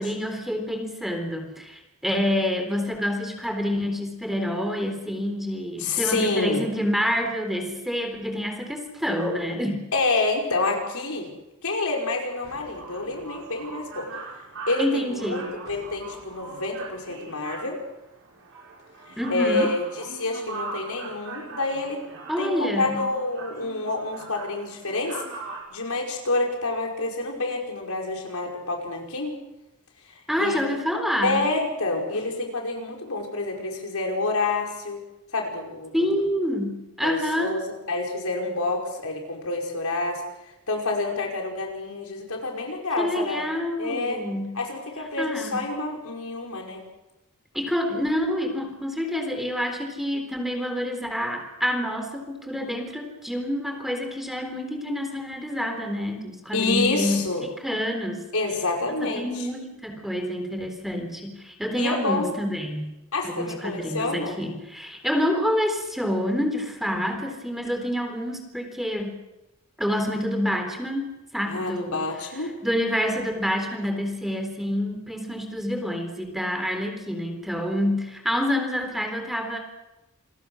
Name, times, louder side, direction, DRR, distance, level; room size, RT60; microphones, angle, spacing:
voice 1, 0.0-9.8 14.8-15.5 19.2-19.7 22.3-23.0 30.3-31.4 35.9-37.6 43.0-44.6 45.2-45.6 47.5-58.3 59.0-62.9 63.2-69.2 69.8-71.1 71.3-72.1 72.6-79.6, equal, ahead, 4 dB, 3.8 m, -27 dB
voice 2, 5.8-6.7 9.9-11.3 11.6-14.1 14.7-17.8 19.3-19.8 20.1-22.0 22.4-25.2 25.7-29.4 30.4-30.6 31.2-35.0 35.3-36.1 37.0-37.6 37.9-40.2 40.7-43.5 43.8-44.2 44.6-46.8 56.5-57.4 58.3-59.5 61.7-62.3 63.1-64.4 71.5-72.5, left 3 dB, 75° left, 1 dB, 5.4 m, -28 dB
sound 1, 12.3-25.6, right 3 dB, 65° right, 6.0 m, -40 dB
28.0 x 21.5 x 6.4 m, 0.97 s
head